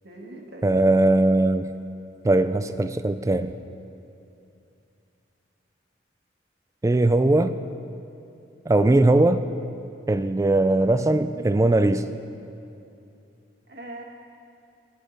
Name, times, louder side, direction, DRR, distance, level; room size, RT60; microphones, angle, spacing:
voice 1, 0.0-1.0 13.7-14.0, right 1 dB, 60° right, 1 dB, 1.4 m, -41 dB
voice 2, 0.6-1.7 2.2-3.5 6.8-7.5 8.7-9.5 10.1-12.1, right 2 dB, 15° right, 10 dB, 0.3 m, -20 dB
18.5 x 6.5 x 5.1 m, 2.7 s
head